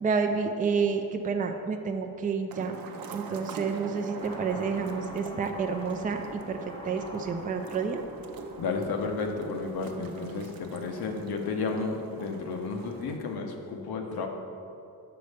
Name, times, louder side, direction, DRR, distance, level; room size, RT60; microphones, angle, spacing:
voice 1, 0.0-2.8 3.1-6.6 6.8-8.0, right 5 dB, 25° right, 5 dB, 0.4 m, -29 dB
sound 1, 2.5-13.2, right 5 dB, 70° right, 0.7 m, -44 dB
Car passing by / Accelerating revving vroom, 4.2-10.8, left 1 dB, 10° left, 0.7 m, -48 dB
voice 2, 8.6-14.3, left 4 dB, 80° left, 3 dB, 0.9 m, -32 dB
6.8 x 4.2 x 6.5 m, 2.7 s
wide cardioid pair, 130°, 37 cm